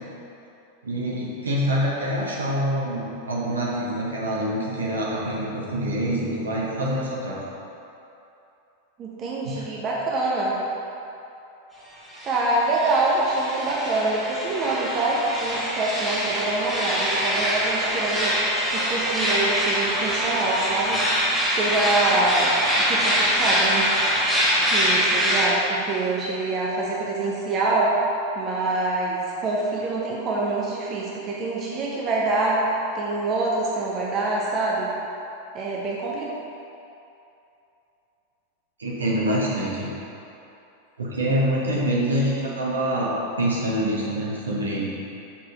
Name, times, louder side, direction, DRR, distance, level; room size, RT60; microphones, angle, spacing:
voice 1, 0.8-7.4 9.4-9.6 38.8-39.9 41.0-44.9, right 1 dB, 70° right, -5 dB, 1.4 m, -25 dB
voice 2, 9.0-10.6 12.2-18.4 18.7-21.0 21.5-24.1 24.7-27.9 28.4-32.6 32.9-34.9 35.5-36.3, right 2 dB, 30° right, -4 dB, 0.9 m, -25 dB
sound 1, 12.1-25.5, equal, ahead, 1.4 m, -24 dB
6.0 x 4.5 x 4.8 m, 2.8 s
figure-of-eight pair, 90°, 0 cm